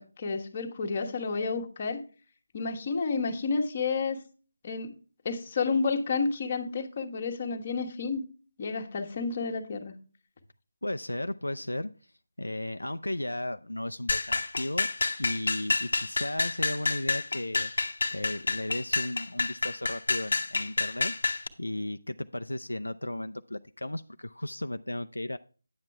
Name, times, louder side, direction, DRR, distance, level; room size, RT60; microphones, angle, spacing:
voice 1, 0.0-2.0 2.5-4.2 4.6-4.9 5.2-8.2 8.6-9.9, left 4 dB, 30° left, 1.3 m, -30 dB
voice 2, 10.8-11.9 12.4-14.9 15.2-17.7 18.1-25.4, left 1 dB, 80° left, 0.5 m, -35 dB
sound 1, 14.1-21.5, left 3 dB, 55° left, 1.0 m, -29 dB
9.7 x 7.4 x 3.3 m
figure-of-eight pair, 160°, 0 cm